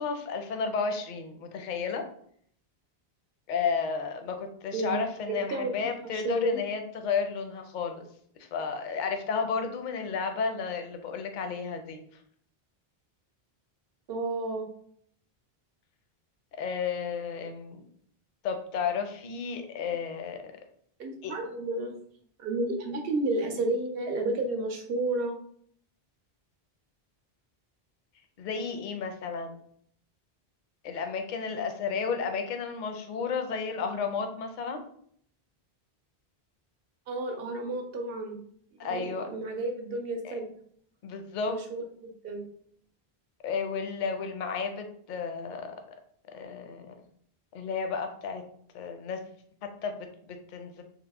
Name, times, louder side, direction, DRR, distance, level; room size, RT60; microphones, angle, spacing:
voice 1, 0.0-2.0 3.5-8.0 8.4-12.0 16.5-17.8 18.4-20.5 21.2-21.3 28.4-29.6 30.8-34.8 38.8-39.3 40.2-40.3 41.0-41.6 43.4-45.7 46.3-46.9 47.5-48.4 48.7-49.2 49.6-50.8, left 5 dB, 60° left, 6 dB, 0.6 m, -32 dB
voice 2, 5.3-5.7 6.1-6.6 14.1-14.7 19.9-20.0 21.0-21.9 22.4-25.3 33.2-33.4 37.1-38.4 38.9-40.5 41.4-42.5, right 2 dB, 70° right, 3 dB, 0.8 m, -31 dB
3.5 x 2.0 x 3.3 m, 0.63 s
omnidirectional pair, 1.0 m